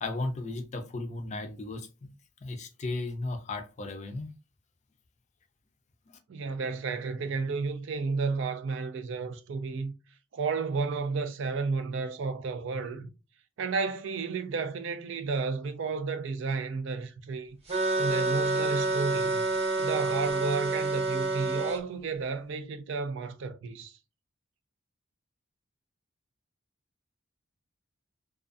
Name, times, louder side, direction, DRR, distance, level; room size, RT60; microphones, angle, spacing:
voice 1, 0.0-1.9 2.4-4.3 6.1-6.2, left 2 dB, 35° left, 0.4 m, -35 dB
voice 2, 6.3-9.9 10.3-13.1 13.6-17.6 18.0-19.4 19.8-23.9, right 4 dB, 65° right, 0.4 m, -32 dB
sound 1, 17.7-21.8, right 2 dB, 30° right, 0.7 m, -28 dB
2.5 x 2.3 x 2.4 m
head